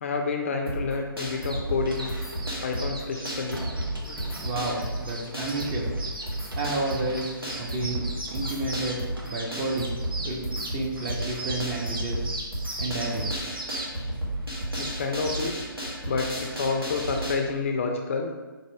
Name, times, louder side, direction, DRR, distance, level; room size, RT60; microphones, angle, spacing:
voice 1, 0.0-2.1 2.6-3.6 4.0-4.2 14.8-15.6 16.1-18.3, left 4 dB, 35° left, 3 dB, 0.4 m, -29 dB
sound 1, 0.7-17.3, right 1 dB, 85° right, 1.4 m, -33 dB
sound 2, 1.3-17.2, right 1 dB, 70° right, 0.9 m, -39 dB
voice 2, 4.4-6.0 6.5-10.0 10.2-12.3 12.8-13.6, right 2 dB, 20° right, -1 dB, 0.6 m, -31 dB
4.2 x 2.5 x 4.6 m, 1.3 s
figure-of-eight pair, 135°, 12 cm